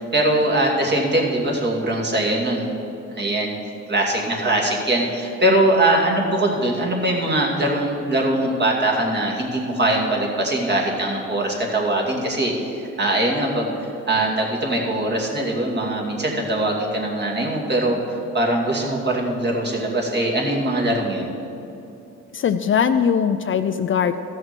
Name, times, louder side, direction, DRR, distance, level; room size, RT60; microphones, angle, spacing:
voice 1, 0.0-2.7 3.1-3.5 3.9-13.7 14.1-21.3, right 1 dB, 35° right, -1 dB, 2.5 m, -22 dB
voice 2, 22.3-24.3, left 7 dB, 45° left, 10 dB, 0.5 m, -20 dB
14.5 x 6.5 x 6.1 m, 2.9 s
cardioid pair, 90°, 30 cm